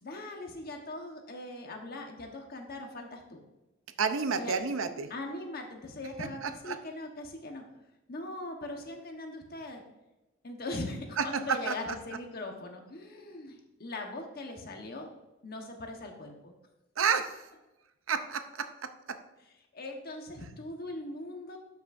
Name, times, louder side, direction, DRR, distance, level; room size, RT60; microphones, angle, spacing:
voice 1, 0.0-3.4 4.4-4.6 5.1-7.6 8.1-9.8 10.4-15.1 15.4-16.5 19.7-21.6, left 2 dB, 50° left, 3 dB, 1.2 m, -40 dB
voice 2, 4.0-5.1 6.4-6.8 11.2-11.8 17.0-17.4 18.1-19.2, right 5 dB, 75° right, 9 dB, 0.7 m, -30 dB
12.0 x 6.0 x 2.6 m, 1.0 s
head